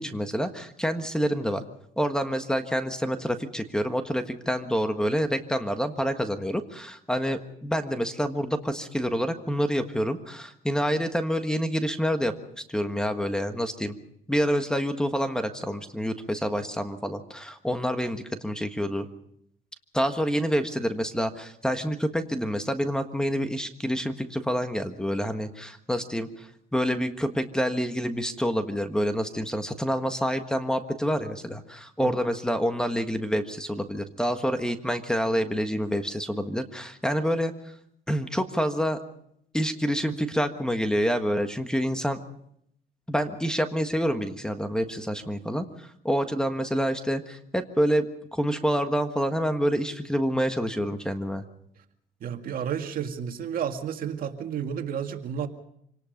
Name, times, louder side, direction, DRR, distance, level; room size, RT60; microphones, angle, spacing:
voice 1, 0.0-1.6 2.0-13.9 14.3-19.1 19.9-37.5 38.1-39.0 39.5-42.2 43.1-51.4, equal, 5° left, 8 dB, 1.5 m, -27 dB
voice 2, 52.2-55.5, right 8 dB, 55° right, 6 dB, 2.0 m, -31 dB
26.5 x 18.5 x 5.3 m, 0.72 s
cardioid pair, 110°, 17 cm